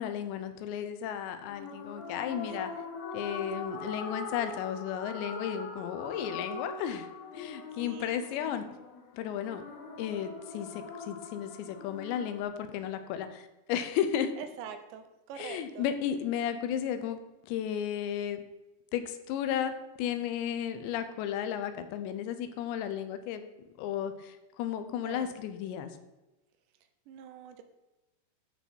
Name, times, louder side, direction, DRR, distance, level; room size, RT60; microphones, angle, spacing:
voice 1, 0.0-2.7 3.1-7.1 7.3-8.6 9.1-9.6 10.0-14.3 15.4-18.4 18.9-19.7 20.0-23.5 23.8-26.0, left 9 dB, 85° left, 9 dB, 3.1 m, -34 dB
sound 1, 1.5-12.4, left 3 dB, 65° left, 1.9 m, -42 dB
voice 2, 7.7-8.5 14.4-15.9 24.9-25.3 27.1-27.6, right 7 dB, 80° right, 8 dB, 3.1 m, -45 dB
13.0 x 5.7 x 4.6 m, 1.1 s
omnidirectional pair, 5.0 m